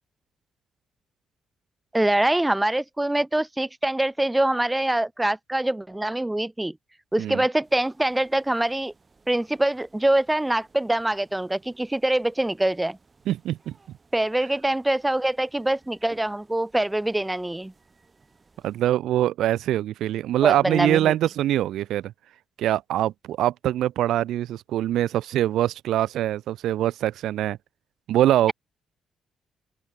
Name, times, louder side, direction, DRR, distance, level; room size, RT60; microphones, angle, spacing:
voice 1, 1.9-6.8 7.1-8.9 9.3-13.0 14.1-17.7 20.4-21.1, right 1 dB, 10° right, 0.4 m, -24 dB
sound 1, 7.6-18.9, right 4 dB, 30° right, 6.2 m, -59 dB
voice 2, 13.3-13.7 18.6-22.1 22.6-27.6 28.1-28.5, right 13 dB, 80° right, 0.7 m, -23 dB
open air
cardioid pair, 90°, 0 cm